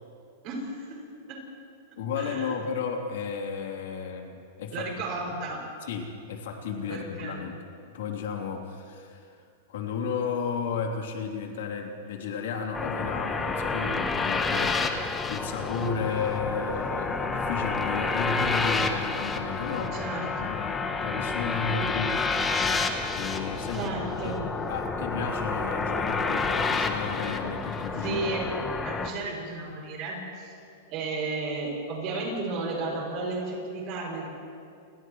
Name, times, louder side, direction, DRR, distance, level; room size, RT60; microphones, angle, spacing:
voice 1, 0.4-1.0 1.3-1.4 2.2-2.5 4.7-5.6 6.9-7.4 19.6-20.5 23.7-24.5 27.9-28.5 28.8-30.5 30.9-34.3, right 3 dB, 30° right, -1 dB, 6.4 m, -33 dB
voice 2, 2.0-4.9 5.9-7.6 7.9-9.4 9.7-14.9 15.3-19.9 20.4-22.3 23.1-23.9 24.2-24.4 24.7-28.2, left 6 dB, 70° left, 1 dB, 3.2 m, -33 dB
sound 1, 12.7-29.1, left 4 dB, 10° left, 0.9 m, -29 dB
29.5 x 29.5 x 3.2 m, 2.5 s
supercardioid pair, 175°, 0 cm